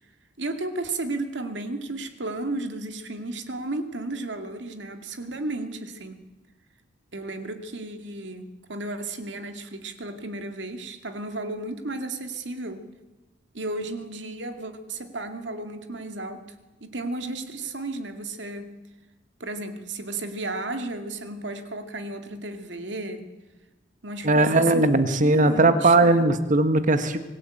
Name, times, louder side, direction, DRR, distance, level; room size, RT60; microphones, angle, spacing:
voice 1, 0.4-6.2 7.1-12.8 13.5-16.4 16.8-18.7 19.4-23.3 24.0-26.3, right 2 dB, 75° right, 6 dB, 2.4 m, -33 dB
voice 2, 24.2-27.2, right 2 dB, 45° right, 10 dB, 1.2 m, -19 dB
25.0 x 16.0 x 8.9 m, 1.2 s
head